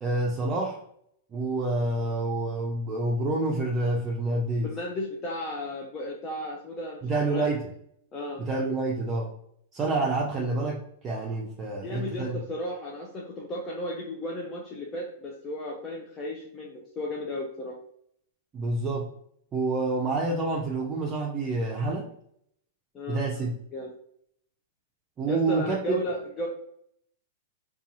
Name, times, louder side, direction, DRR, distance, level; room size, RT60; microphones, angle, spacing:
voice 1, 0.0-0.8 1.3-4.7 7.0-7.6 8.4-9.3 9.7-10.8 11.0-12.4 18.5-19.1 19.5-22.1 23.1-23.5 25.2-26.0, right 2 dB, 25° right, -3 dB, 0.5 m, -28 dB
voice 2, 4.6-7.5 8.1-8.4 11.8-17.8 22.9-23.4 23.7-23.9 25.3-26.5, left 1 dB, 25° left, -2 dB, 0.5 m, -34 dB
2.6 x 2.3 x 2.6 m, 0.70 s
figure-of-eight pair, 105°, 0 cm